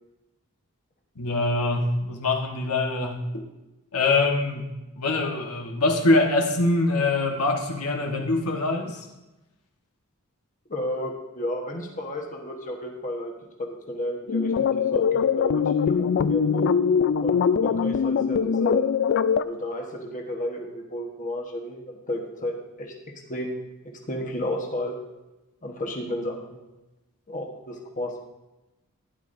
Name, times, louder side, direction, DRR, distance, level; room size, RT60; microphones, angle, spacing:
voice 1, 1.2-3.4 3.9-4.7 5.0-9.0, left 2 dB, 80° left, 2 dB, 1.3 m, -24 dB
voice 2, 10.7-13.3 13.6-16.7 17.2-18.8 19.4-22.9 23.3-23.6 24.1-24.9 25.6-26.6 27.3-28.2, left 1 dB, 35° left, 0 dB, 1.2 m, -32 dB
sound 1, 14.3-19.4, left 6 dB, 50° left, 0.3 m, -22 dB
12.0 x 10.5 x 2.7 m, 1.0 s
head